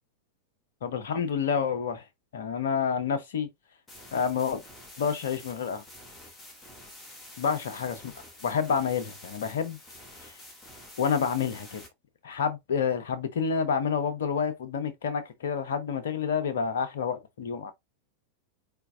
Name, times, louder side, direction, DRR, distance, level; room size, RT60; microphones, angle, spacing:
voice 1, 0.8-2.0 2.3-3.5 4.1-4.6 5.0-5.8 7.4-8.1 8.4-9.8 10.2-10.3 11.0-11.8 12.2-17.7, left 6 dB, 60° left, 1.0 m, -28 dB
sound 1, 3.9-11.9, left 1 dB, 15° left, 2.0 m, -48 dB
4.6 x 4.5 x 2.4 m
figure-of-eight pair, 90°, 0 cm